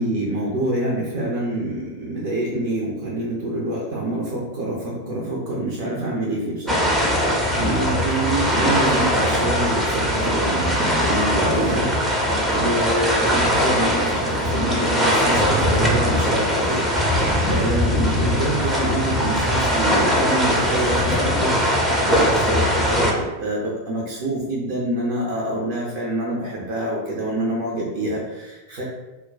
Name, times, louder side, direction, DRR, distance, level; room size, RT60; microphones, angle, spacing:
voice 1, 0.0-7.2 7.5-11.9 12.5-16.9 17.5-21.6 22.0-28.8, right 1 dB, 50° right, -4 dB, 0.6 m, -26 dB
sound 1, 6.7-23.1, equal, 5° right, 0.6 m, -20 dB
2.1 x 2.1 x 3.8 m, 1.1 s
figure-of-eight pair, 90°, 0 cm